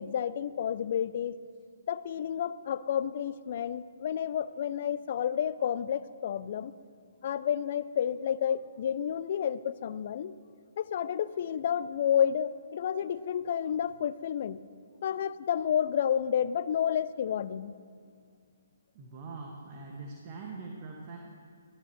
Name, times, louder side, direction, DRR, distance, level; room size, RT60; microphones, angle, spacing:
voice 1, 0.0-1.4 1.9-6.7 7.2-10.4 10.8-14.7 15.0-17.8, left 9 dB, 45° left, 16 dB, 0.5 m, -30 dB
voice 2, 18.9-21.2, right 3 dB, 35° right, -1 dB, 1.9 m, -43 dB
23.0 x 16.0 x 3.2 m, 2.2 s
figure-of-eight pair, 130°, 0 cm